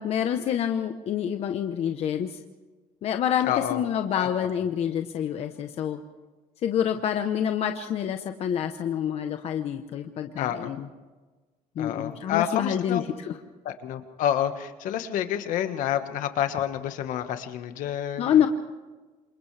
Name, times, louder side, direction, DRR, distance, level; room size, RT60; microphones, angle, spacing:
voice 1, 0.0-2.4 3.0-6.0 6.6-10.9 11.8-13.4 18.2-18.5, left 9 dB, 50° left, 6 dB, 1.0 m, -27 dB
voice 2, 3.4-3.8 4.1-4.3 10.4-10.7 11.8-13.0 13.6-18.5, left 10 dB, 70° left, 8 dB, 1.6 m, -29 dB
28.0 x 27.5 x 3.4 m, 1.3 s
cardioid pair, 155°, 14 cm